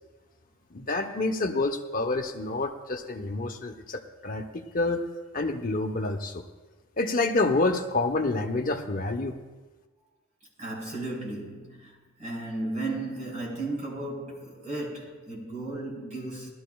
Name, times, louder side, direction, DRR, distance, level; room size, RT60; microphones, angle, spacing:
voice 1, 0.7-5.0 5.3-6.4 7.0-9.4, left 2 dB, 40° left, 4 dB, 0.9 m, -28 dB
voice 2, 10.6-16.5, right 2 dB, 35° right, -4 dB, 3.8 m, -35 dB
19.5 x 12.5 x 2.3 m, 1.2 s
head